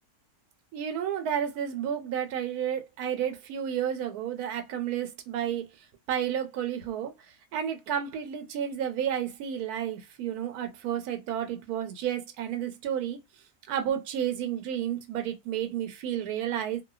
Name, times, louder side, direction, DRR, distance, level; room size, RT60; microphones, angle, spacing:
voice 1, 0.7-5.6 6.1-7.1 7.5-13.2 13.7-16.8, right 9 dB, 85° right, 1.1 m, -31 dB
2.7 x 2.1 x 2.3 m
omnidirectional pair, 1.6 m